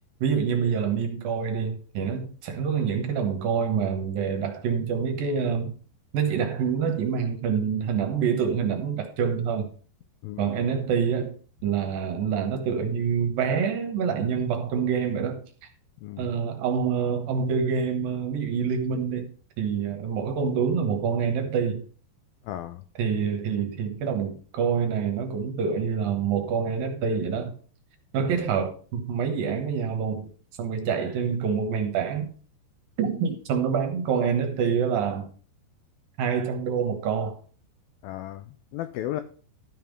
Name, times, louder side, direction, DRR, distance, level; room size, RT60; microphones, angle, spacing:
voice 1, 0.2-5.8 6.1-9.7 10.4-11.4 11.6-15.4 16.2-21.9 23.0-27.6 28.1-30.3 30.6-32.3 33.0-35.3 36.2-37.4, right 6 dB, 65° right, 2.6 m, -26 dB
voice 2, 10.2-10.6 16.0-16.3 22.5-22.8 28.3-28.4 38.0-39.2, left 13 dB, 90° left, 2.0 m, -35 dB
13.0 x 5.6 x 5.3 m
omnidirectional pair, 5.0 m